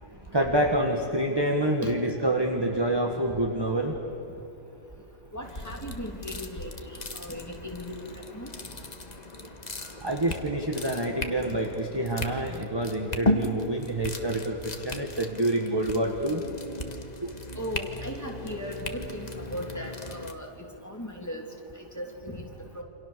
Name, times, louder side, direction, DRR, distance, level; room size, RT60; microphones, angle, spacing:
voice 1, 0.3-4.0 10.0-14.6 14.8-16.4 17.2-17.3, right 1 dB, 15° right, 3 dB, 1.6 m, -27 dB
voice 2, 5.3-8.5 17.5-20.5 20.8-21.4 21.7-22.5 22.7-22.8, equal, 10° left, 1 dB, 3.1 m, -38 dB
sound 1, 5.4-20.3, left 2 dB, 30° left, 1.6 m, -36 dB
29.0 x 26.5 x 6.9 m, 2.9 s
omnidirectional pair, 1.6 m